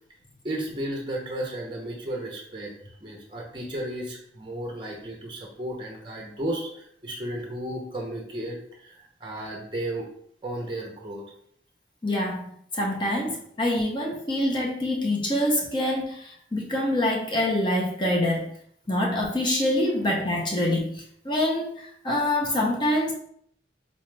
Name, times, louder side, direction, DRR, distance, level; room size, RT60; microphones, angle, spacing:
voice 1, 0.4-2.7 3.0-10.1 10.4-11.2, right 1 dB, 25° right, 0 dB, 0.6 m, -34 dB
voice 2, 12.0-18.5 18.9-23.1, left 1 dB, 25° left, -2 dB, 0.6 m, -25 dB
4.0 x 2.3 x 3.1 m, 0.65 s
head